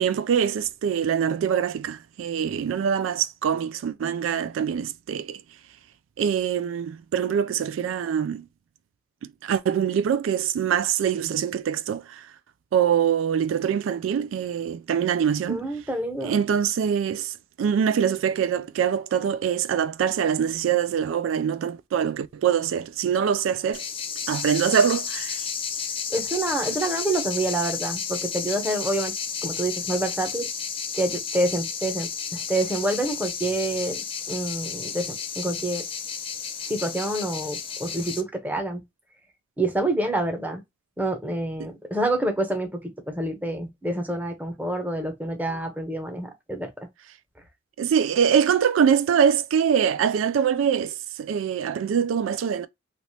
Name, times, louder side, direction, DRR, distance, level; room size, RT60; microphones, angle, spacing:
voice 1, 0.0-5.4 6.2-8.4 9.4-12.3 12.7-15.7 16.2-23.8 24.3-25.5 41.6-41.7 47.8-52.7, right 8 dB, 80° right, 0.3 m, -24 dB
voice 2, 15.5-16.4 26.1-29.1 29.4-30.5 30.9-35.8 36.7-38.8 39.6-40.6 41.0-46.7, right 1 dB, 10° right, 0.8 m, -27 dB
sound 1, 23.7-38.2, left 6 dB, 30° left, 0.7 m, -32 dB
3.3 x 2.9 x 2.7 m
head